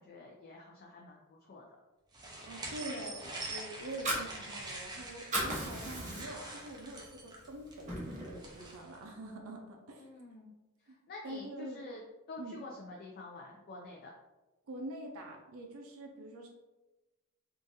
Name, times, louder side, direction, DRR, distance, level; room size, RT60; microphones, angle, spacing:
voice 1, 0.0-1.6 10.0-10.5 10.8-12.0 12.3-14.1, left 2 dB, 45° left, -1 dB, 0.4 m, -48 dB
sound 1, 2.1-9.0, right 2 dB, 20° right, 0.5 m, -45 dB
voice 2, 2.5-10.1 10.9-11.0 11.2-11.8 12.4-12.6 14.7-16.5, right 1 dB, 70° right, 2 dB, 0.5 m, -45 dB
Fire, 3.8-4.9 5.2-6.5 7.0-7.1 7.5-8.5, right 1 dB, 35° right, 1.0 m, -36 dB
3.8 x 2.5 x 2.6 m, 1.1 s
head